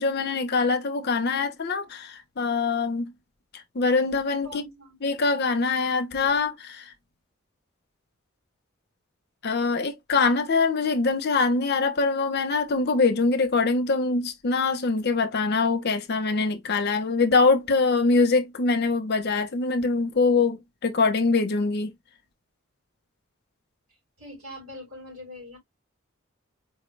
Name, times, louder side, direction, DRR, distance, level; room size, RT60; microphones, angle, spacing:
voice 1, 0.0-3.1 3.7-4.6 5.0-6.9 9.4-21.9, left 4 dB, 50° left, 0.7 m, -23 dB
voice 2, 4.4-5.0 24.2-25.6, left 1 dB, 85° right, 3.5 m, -42 dB
4.7 x 2.2 x 3.2 m
head